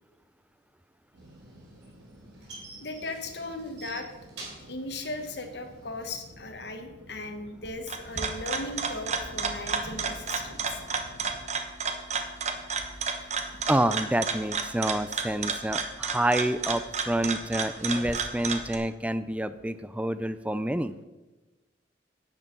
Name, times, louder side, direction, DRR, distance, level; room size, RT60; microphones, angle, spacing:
sound 1, 1.1-11.5, equal, 90° right, 1.7 m, -52 dB
sound 2, 1.2-6.3, right 3 dB, 75° right, 3.9 m, -47 dB
voice 1, 2.8-4.1 4.6-10.8, left 2 dB, 65° left, 6 dB, 1.3 m, -37 dB
sound 3, 7.7-18.8, right 5 dB, 40° right, 1.1 m, -32 dB
voice 2, 13.7-20.9, right 1 dB, 5° right, 13 dB, 0.4 m, -28 dB
11.0 x 8.8 x 5.3 m, 1.1 s
head